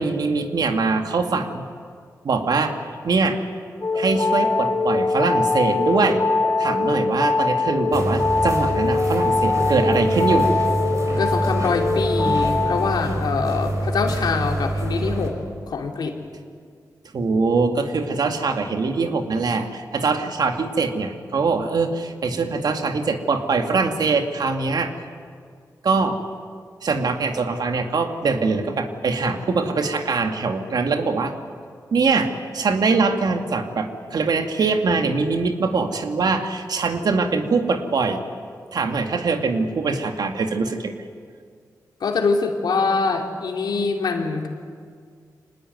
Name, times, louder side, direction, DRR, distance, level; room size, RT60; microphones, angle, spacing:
voice 1, 0.0-1.6 2.2-2.8 3.0-3.4 3.9-6.2 6.6-10.5 17.1-24.9 25.8-26.2 26.8-31.3 31.9-38.2 38.7-40.9, right 4 dB, 75° right, 6 dB, 2.1 m, -22 dB
sound 1, 3.8-13.0, left 3 dB, 45° left, 3.6 m, -22 dB
sound 2, 7.9-15.3, right 1 dB, 50° right, 5.4 m, -26 dB
voice 2, 11.2-15.4 15.7-16.1 42.0-44.5, left 4 dB, 85° left, 2 dB, 2.8 m, -24 dB
24.5 x 19.0 x 9.4 m, 2.1 s
cardioid pair, 70°, 7 cm